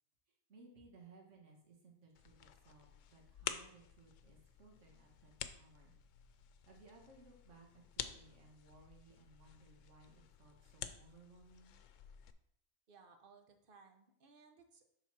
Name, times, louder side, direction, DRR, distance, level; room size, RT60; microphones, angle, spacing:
voice 1, 0.3-5.9 6.7-7.7 7.9-11.8, right 3 dB, 75° right, 0 dB, 1.8 m, -62 dB
sound 1, 2.2-12.3, left 9 dB, 85° left, 1.0 m, -50 dB
voice 2, 12.9-14.8, right 5 dB, 50° right, 5 dB, 1.1 m, -62 dB
7.3 x 3.9 x 6.0 m, 0.74 s
omnidirectional pair, 1.3 m